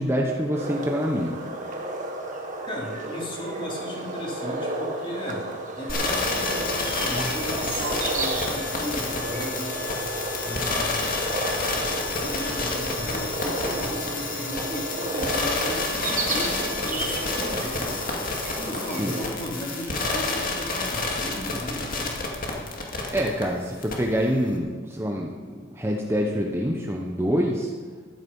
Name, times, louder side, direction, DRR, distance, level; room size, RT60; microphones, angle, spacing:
voice 1, 0.0-1.4 19.0-19.1 23.1-27.7, equal, 10° right, 0 dB, 1.0 m, -26 dB
sound 1, 0.5-19.3, right 2 dB, 40° right, 1.8 m, -32 dB
voice 2, 2.7-5.4 5.8-9.7 10.4-11.3 12.0-18.1 18.5-22.2, equal, 25° left, -3 dB, 3.3 m, -36 dB
sound 2, 5.9-23.4 23.8-23.9, left 3 dB, 45° left, 2.3 m, -29 dB
14.0 x 12.0 x 5.5 m, 1.5 s
head